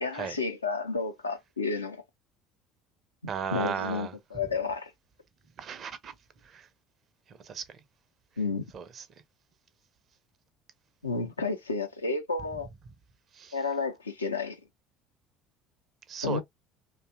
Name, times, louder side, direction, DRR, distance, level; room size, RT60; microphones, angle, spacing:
voice 1, 0.0-2.0 3.5-4.9 8.4-8.7 11.0-12.7 13.5-14.6 16.2-16.4, left 4 dB, 85° left, 0.5 m, -31 dB
voice 2, 3.3-4.1 5.6-6.1 6.4-6.7 7.3-7.6 8.7-9.1 13.3-13.6 16.1-16.4, right 7 dB, 45° right, 0.5 m, -35 dB
2.6 x 2.3 x 2.3 m
figure-of-eight pair, 60°, 0 cm